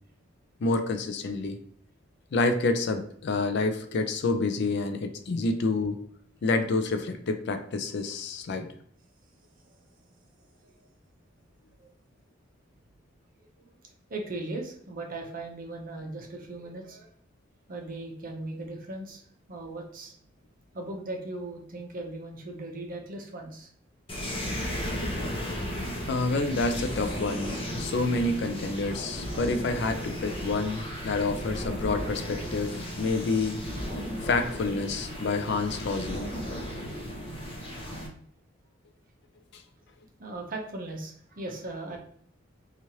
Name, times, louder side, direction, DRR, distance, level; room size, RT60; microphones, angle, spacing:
voice 1, 0.6-1.6 2.3-6.0 6.4-8.7 25.0-25.1 26.1-33.6 34.2-36.3 39.5-39.6, left 3 dB, 60° left, 7 dB, 0.4 m, -28 dB
voice 2, 14.1-17.1 17.7-19.2 19.5-20.1 20.7-23.7 40.2-42.0, right 2 dB, 45° right, 2 dB, 0.7 m, -38 dB
sound 1, 24.1-38.1, equal, 30° left, 0.7 m, -35 dB
3.0 x 2.4 x 2.7 m, 0.64 s
head